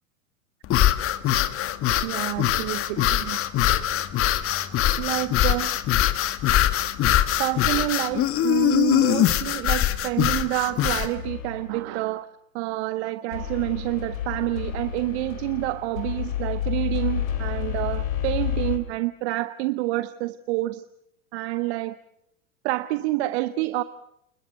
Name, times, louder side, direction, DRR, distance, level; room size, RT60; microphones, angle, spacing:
sound 1, 0.6-11.1, left 12 dB, 35° left, 1.7 m, -22 dB
voice 1, 2.0-3.4 5.0-5.8 7.4-12.3 12.5-20.8 21.3-22.0 22.6-23.8, right 18 dB, 50° right, 13 dB, 1.0 m, -28 dB
sound 2, 11.1-11.9 13.3-18.8, left 9 dB, 75° left, 4.0 m, -30 dB
28.5 x 21.0 x 6.6 m, 0.78 s
hypercardioid pair, 100°, 40 cm